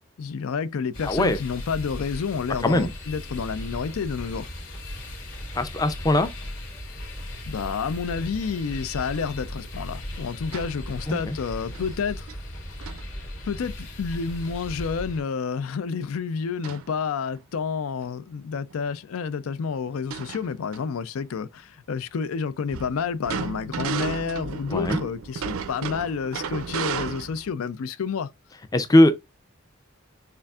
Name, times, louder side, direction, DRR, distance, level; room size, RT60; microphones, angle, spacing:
voice 1, 0.2-4.5 7.5-12.3 13.4-28.3, left 5 dB, 85° left, 0.4 m, -29 dB
sound 1, 0.9-15.2, left 1 dB, 65° left, 2.5 m, -37 dB
voice 2, 1.0-1.4 2.6-2.9 5.6-6.3 11.1-11.4 24.7-25.0 28.7-29.1, left 1 dB, 20° left, 0.4 m, -20 dB
sound 2, 10.5-10.8 11.7-11.9 12.3-12.4 12.8-13.1 16.6-16.9 17.3-17.4 18.7-18.8 19.2-19.3 19.9-20.8 22.7-27.5, right 6 dB, 80° right, 0.4 m, -33 dB
6.7 x 2.5 x 2.3 m
head